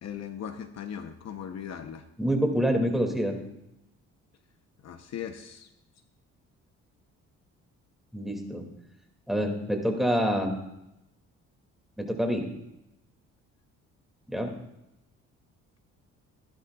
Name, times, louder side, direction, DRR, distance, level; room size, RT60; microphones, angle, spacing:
voice 1, 0.0-2.0 4.8-5.7, left 8 dB, 60° left, 7 dB, 0.9 m, -38 dB
voice 2, 2.2-3.4 8.1-8.6 9.3-10.6 12.0-12.5 14.3-14.5, equal, ahead, 2 dB, 2.4 m, -26 dB
16.0 x 12.0 x 2.4 m, 0.88 s
cardioid pair, 90°, 30 cm